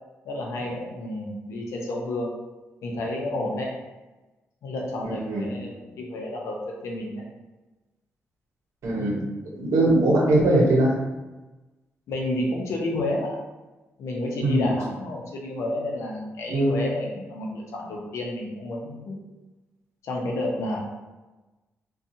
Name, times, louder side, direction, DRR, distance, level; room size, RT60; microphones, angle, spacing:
voice 1, 0.2-2.3 2.8-3.7 4.6-7.2 9.0-9.3 12.1-13.4 14.0-19.2 20.0-20.8, left 1 dB, 80° left, -1 dB, 0.6 m, -30 dB
voice 2, 5.0-5.5 8.8-9.2 9.6-11.0 14.4-14.7 16.5-16.8, right 1 dB, 85° right, -3 dB, 0.8 m, -21 dB
2.7 x 2.3 x 2.6 m, 1.1 s
wide cardioid pair, 155°, 5 cm